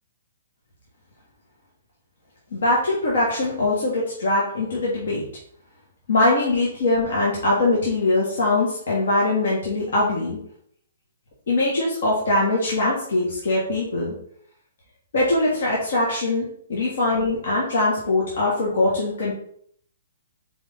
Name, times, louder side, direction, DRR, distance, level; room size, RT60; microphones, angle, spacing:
voice 1, 2.5-5.2 6.1-10.4 11.5-14.1 15.1-19.3, left 2 dB, 70° left, -5 dB, 1.4 m, -22 dB
4.1 x 3.5 x 3.6 m, 0.64 s
hypercardioid pair, 145°, 0 cm